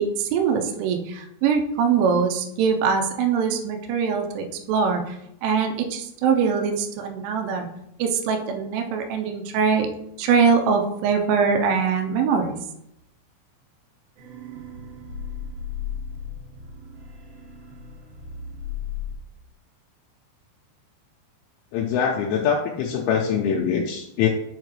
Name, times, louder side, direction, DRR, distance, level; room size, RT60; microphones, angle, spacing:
voice 1, 0.0-7.7 8.0-9.9 10.2-12.5, right 6 dB, 85° right, 4 dB, 3.2 m, -22 dB
sound 1, 14.2-19.1, left 6 dB, 65° right, 2.7 m, -35 dB
voice 2, 21.7-24.3, left 7 dB, 85° left, -1 dB, 3.0 m, -23 dB
7.1 x 4.8 x 3.1 m, 0.77 s
omnidirectional pair, 5.6 m